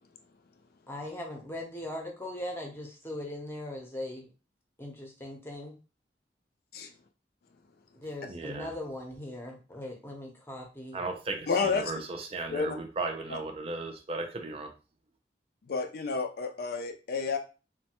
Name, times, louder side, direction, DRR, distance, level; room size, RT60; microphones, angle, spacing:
voice 1, 0.9-4.3 4.8-5.8 8.0-11.0, left 1 dB, 15° left, 1 dB, 0.7 m, -39 dB
voice 2, 8.3-8.7 10.9-14.7, right 3 dB, 35° right, 4 dB, 0.4 m, -36 dB
voice 3, 11.5-11.9 12.5-12.8 13.3-13.4 15.7-17.4, left 5 dB, 55° left, 6 dB, 0.4 m, -30 dB
3.1 x 2.2 x 2.9 m, 0.33 s
head